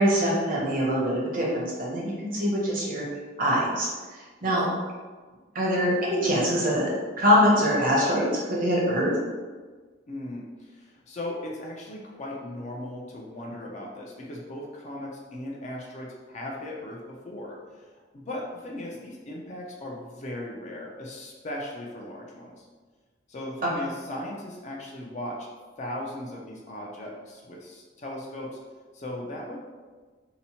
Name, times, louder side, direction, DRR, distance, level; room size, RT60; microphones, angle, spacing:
voice 1, 0.0-3.0 3.4-4.6 5.5-6.9 7.2-9.2, equal, 45° right, -4 dB, 0.7 m, -24 dB
voice 2, 10.1-17.6 18.1-22.6 23.3-25.5 25.8-28.6 28.9-29.6, left 1 dB, 35° left, -2 dB, 0.4 m, -37 dB
2.8 x 2.0 x 2.7 m, 1.4 s
head